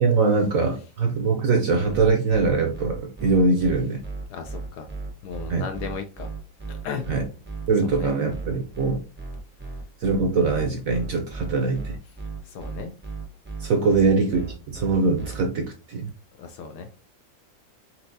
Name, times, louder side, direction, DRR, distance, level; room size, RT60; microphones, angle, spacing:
voice 1, 0.0-4.0 5.5-5.7 7.1-7.2 7.7-9.0 10.0-11.9 13.6-16.1, right 4 dB, 60° right, 4 dB, 0.9 m, -22 dB
sound 1, 1.9-15.4, right 3 dB, 15° right, 0.3 m, -35 dB
voice 2, 4.3-4.9 5.2-6.3 6.7-7.0 7.8-8.1 12.4-12.9 13.8-13.9 16.4-16.9, left 6 dB, 70° left, 5 dB, 1.0 m, -35 dB
4.4 x 4.1 x 2.6 m, 0.34 s
omnidirectional pair, 2.0 m